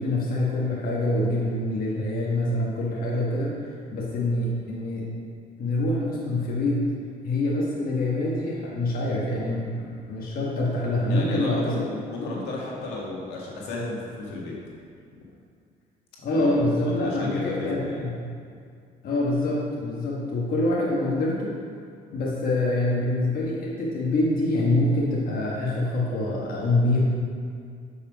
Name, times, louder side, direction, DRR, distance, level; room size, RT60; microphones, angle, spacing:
voice 1, 0.0-5.0 5.6-6.9 7.2-11.7 12.2-12.3 16.2-18.2 19.0-21.5 22.1-27.0, left 1 dB, 60° left, -5 dB, 1.4 m, -25 dB
voice 2, 11.1-14.6 15.1-15.2 16.3-18.0, left 2 dB, 85° left, -4 dB, 1.7 m, -33 dB
6.9 x 5.6 x 5.0 m, 2.2 s
cardioid pair, 110°, 17 cm